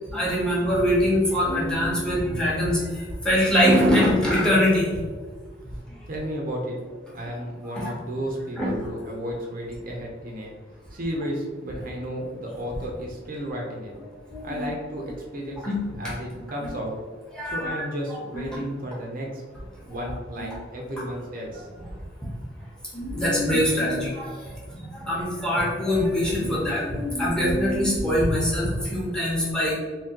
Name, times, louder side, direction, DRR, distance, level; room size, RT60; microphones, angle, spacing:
voice 1, 0.1-2.8 3.2-4.9 7.8-7.9 8.6-8.7 14.3-14.7 15.6-16.1 16.6-16.7 17.3-17.8 18.3-18.6 20.0-20.6 22.9-24.3 24.9-29.7, equal, 5° left, -6 dB, 1.0 m, -23 dB
voice 2, 6.1-6.8 7.1-10.5 10.9-13.9 14.4-16.9 17.5-19.4 19.8-21.7, equal, 50° right, -1 dB, 0.6 m, -33 dB
3.6 x 2.8 x 2.8 m, 1.5 s
head